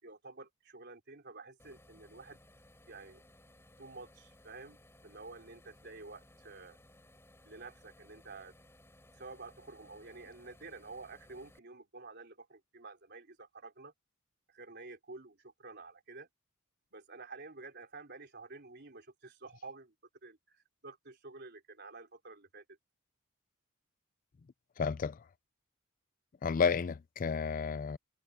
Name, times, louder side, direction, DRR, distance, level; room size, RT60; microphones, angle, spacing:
voice 1, 0.0-2.4 2.9-3.2 3.8-4.8 5.0-6.8 7.5-8.5 9.2-13.9 14.5-16.3 16.9-19.9 20.2-22.8, right 3 dB, 50° right, 3.9 m, -50 dB
sound 1, 1.6-11.6, left 1 dB, 10° left, 3.6 m, -61 dB
voice 2, 24.8-25.2 26.4-28.0, left 5 dB, 40° left, 0.4 m, -31 dB
head